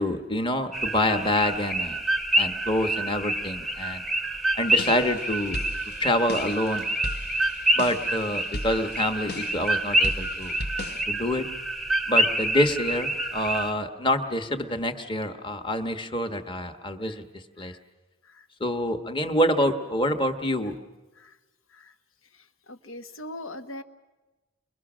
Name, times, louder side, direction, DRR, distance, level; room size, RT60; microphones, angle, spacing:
voice 1, 0.0-2.0 2.3-4.0 4.6-5.6 6.0-6.8 7.8-10.5 11.1-11.5 12.1-17.2 17.6-17.7 18.6-20.8, left 1 dB, 25° left, 7 dB, 1.2 m, -26 dB
sound 1, 0.7-13.7, right 1 dB, ahead, 0.8 m, -27 dB
sound 2, 4.7-11.0, left 1 dB, 50° left, 0.9 m, -37 dB
voice 2, 22.7-23.8, left 1 dB, 90° left, 8 dB, 1.3 m, -40 dB
30.0 x 22.5 x 6.2 m, 1.2 s
head